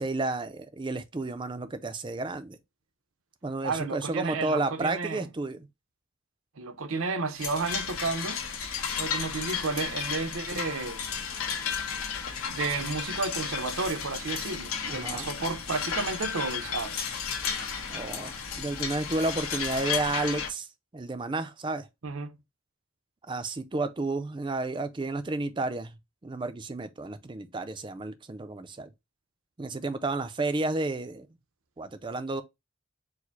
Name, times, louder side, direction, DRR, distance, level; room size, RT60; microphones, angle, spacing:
voice 1, 0.0-2.6 3.4-5.7 14.9-15.3 17.9-20.7 20.9-21.9 23.3-25.9 26.2-28.9 29.6-31.3 31.8-32.4, right 2 dB, 20° right, 0.4 m, -31 dB
voice 2, 3.6-5.3 6.6-8.4 9.0-11.1 12.5-17.0 22.0-22.4, right 4 dB, 75° right, 0.7 m, -32 dB
sound 1, 7.4-20.5, left 7 dB, 85° left, 1.1 m, -33 dB
4.6 x 2.1 x 4.5 m
head